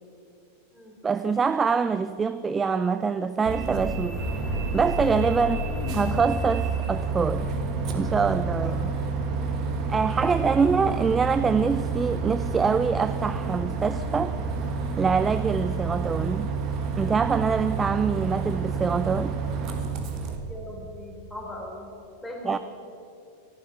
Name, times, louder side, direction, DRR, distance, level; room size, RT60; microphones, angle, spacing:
voice 1, 1.0-4.2 4.7-5.6 5.9-7.5 7.9-8.9 9.9-14.4 15.0-16.5 17.0-19.4 22.4-22.6, right 5 dB, 15° right, 13 dB, 0.4 m, -24 dB
Bus, 3.5-20.4, right 4 dB, 35° right, 1.6 m, -29 dB
voice 2, 10.2-10.6 20.5-21.9 22.2-22.6, left 1 dB, 5° left, -1 dB, 3.4 m, -39 dB
14.0 x 11.5 x 7.5 m, 2.7 s
figure-of-eight pair, 90°, 0 cm